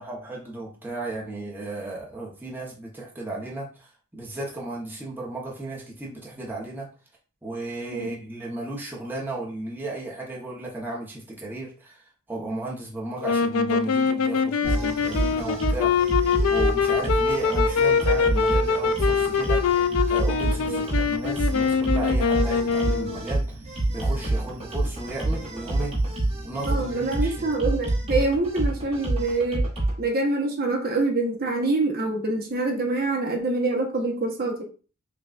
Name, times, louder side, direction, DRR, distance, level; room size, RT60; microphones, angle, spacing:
voice 1, 0.0-6.9 7.4-15.9 16.5-19.6 20.1-23.6 23.9-25.9 26.4-27.5, right 2 dB, 10° right, -3 dB, 0.8 m, -34 dB
sound 1, 13.2-23.2, left 5 dB, 65° left, 0.4 m, -23 dB
sound 2, 14.6-30.0, right 2 dB, 25° right, 1.3 m, -27 dB
voice 2, 26.6-29.7 30.0-34.6, right 2 dB, 45° right, 1 dB, 0.8 m, -25 dB
5.9 x 2.3 x 2.4 m, 0.37 s
head